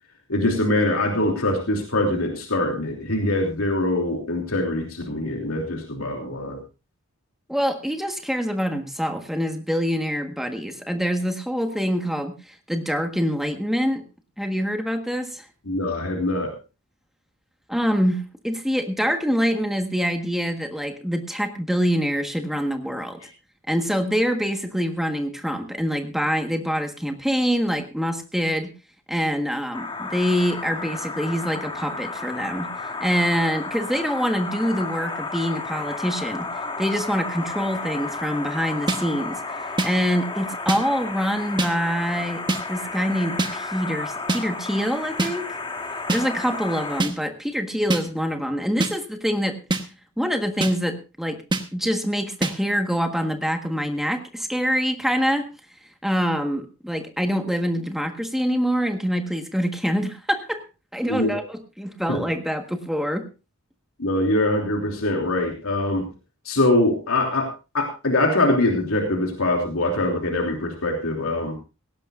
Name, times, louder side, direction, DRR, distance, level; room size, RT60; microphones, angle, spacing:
voice 1, 0.3-6.6 15.6-16.5 61.1-61.4 62.1-62.2 64.0-66.1 66.4-67.5 67.7-71.6, left 1 dB, 85° left, 2 dB, 3.0 m, -23 dB
voice 2, 7.5-14.0 14.4-15.4 17.7-23.2 23.7-28.7 29.1-32.7 33.0-36.5 36.8-39.4 39.8-45.4 46.1-49.6 50.2-51.4 51.7-55.5 56.0-60.6 60.9-63.3, equal, ahead, 5 dB, 1.4 m, -25 dB
sound 1, 29.7-47.0, left 3 dB, 20° left, 1.6 m, -32 dB
sound 2, 38.9-39.0 39.8-39.9 40.7-40.8 41.6-41.7 42.5-42.6 43.4-43.5 44.3-44.4 45.2-45.3 46.1-46.2 47.0-47.1 47.9-48.0 48.8-48.9 49.7-49.8 50.6-50.7 51.5-51.6 52.4-52.5, right 2 dB, 20° right, 1.2 m, -22 dB
17.5 x 16.5 x 2.5 m, 0.30 s
head